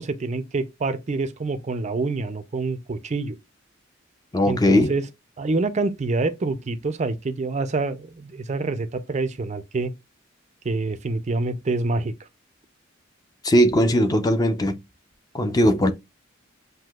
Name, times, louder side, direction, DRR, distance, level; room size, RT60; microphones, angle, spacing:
voice 1, 0.0-3.4 4.5-5.0 5.4-9.9 10.6-12.1, right 3 dB, 35° right, 0.4 m, -26 dB
voice 2, 4.3-4.9 13.4-14.8 15.3-15.9, equal, 20° left, 0.5 m, -19 dB
7.5 x 2.7 x 2.3 m
head